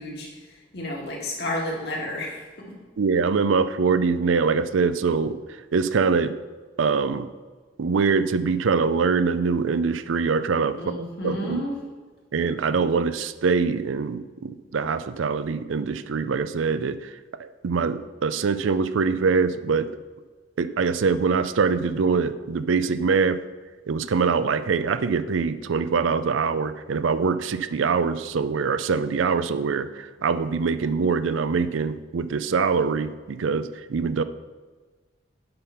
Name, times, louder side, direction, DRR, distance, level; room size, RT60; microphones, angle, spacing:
voice 1, 0.0-2.8 10.8-11.7, left 1 dB, 55° left, -2 dB, 2.0 m, -32 dB
voice 2, 3.0-5.4 5.7-6.3 6.8-7.3 7.8-10.8 11.2-11.7 12.3-17.1 17.4-19.9 20.6-23.4 23.9-34.2, right 5 dB, 85° right, 13 dB, 0.5 m, -23 dB
7.8 x 5.7 x 5.7 m, 1.3 s
head